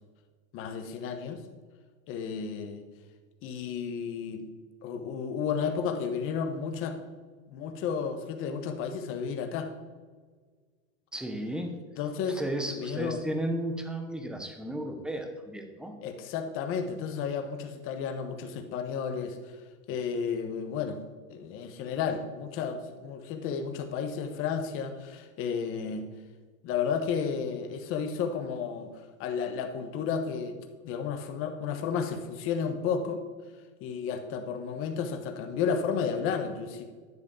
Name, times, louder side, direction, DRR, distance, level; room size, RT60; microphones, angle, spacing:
voice 1, 0.5-1.4 2.1-2.8 3.4-4.5 4.8-7.0 7.5-9.7 12.0-12.4 12.7-13.2 16.0-19.4 19.9-21.0 21.3-26.0 26.6-28.9 29.2-30.6 30.8-33.2 33.8-36.8, left 6 dB, 35° left, 6 dB, 1.1 m, -32 dB
voice 2, 11.1-11.8 12.3-15.9, right 1 dB, ahead, 5 dB, 0.7 m, -34 dB
11.0 x 4.9 x 8.0 m, 1.5 s
supercardioid pair, 155°, 39 cm